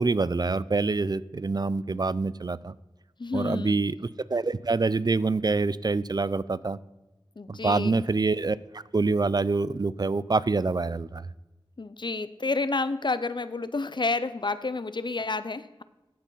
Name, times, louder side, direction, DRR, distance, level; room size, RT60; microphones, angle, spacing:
voice 1, 0.0-2.7 3.3-3.9 4.3-6.8 7.5-11.2, right 3 dB, 45° right, 18 dB, 0.3 m, -26 dB
voice 2, 3.2-3.8 7.4-8.0 11.8-15.8, left 3 dB, 55° left, 14 dB, 0.5 m, -30 dB
14.5 x 5.0 x 5.5 m, 1.0 s
wide cardioid pair, 55°, 9 cm